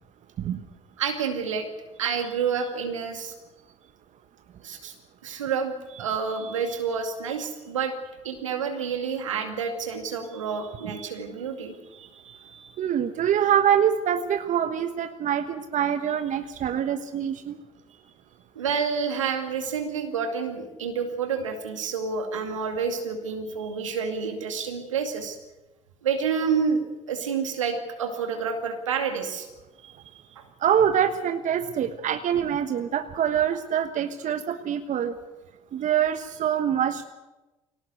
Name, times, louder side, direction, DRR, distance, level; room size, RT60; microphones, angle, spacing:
voice 1, 1.0-1.7 2.0-3.3 4.6-4.9 5.2-7.9 8.2-12.7 18.6-25.4 26.0-29.5 29.8-30.4, right 6 dB, 85° right, 5 dB, 2.3 m, -29 dB
voice 2, 12.8-17.6 30.6-35.2 35.7-37.0, right 9 dB, 55° right, 9 dB, 1.3 m, -25 dB
22.5 x 18.0 x 8.1 m, 1.1 s
hypercardioid pair, 50°, 16 cm